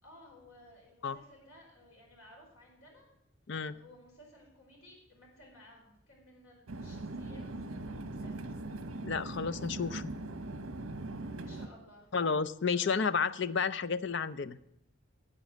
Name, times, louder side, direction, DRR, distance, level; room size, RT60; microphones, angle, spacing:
voice 1, 0.0-3.1 3.7-8.5 11.4-12.1 12.7-12.9, left 1 dB, 85° left, -1 dB, 4.8 m, -57 dB
sound 1, 6.7-11.7, right 2 dB, 75° right, 1.0 m, -40 dB
voice 2, 9.0-10.1 12.1-14.6, left 5 dB, 55° left, 15 dB, 0.5 m, -31 dB
10.5 x 8.2 x 7.4 m, 0.79 s
head